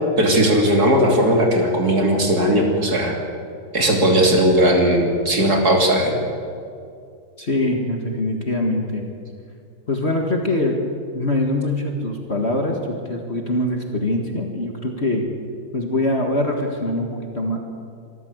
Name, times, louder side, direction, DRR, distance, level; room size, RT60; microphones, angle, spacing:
voice 1, 0.2-3.1 3.7-6.2, right 1 dB, 45° right, 1 dB, 3.4 m, -17 dB
voice 2, 7.4-9.0 9.9-10.8 11.1-15.2 15.7-17.6, left 1 dB, 30° left, 2 dB, 2.0 m, -23 dB
25.0 x 14.0 x 8.1 m, 2.4 s
omnidirectional pair, 2.3 m